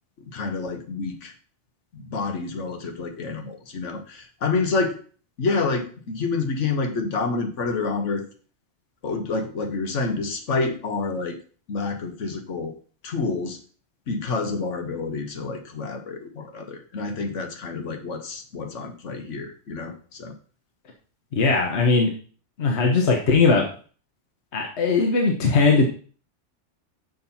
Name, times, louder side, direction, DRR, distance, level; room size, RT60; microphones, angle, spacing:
voice 1, 0.3-1.3 1.9-5.0 5.4-8.2 9.0-11.4 11.7-12.7 13.0-13.6 14.1-20.3, left 4 dB, 90° left, 6 dB, 1.5 m, -28 dB
voice 2, 21.4-22.1 22.6-23.6 24.5-25.8, left 4 dB, 65° left, 1 dB, 1.3 m, -19 dB
6.5 x 4.4 x 5.4 m, 0.41 s
omnidirectional pair, 1.2 m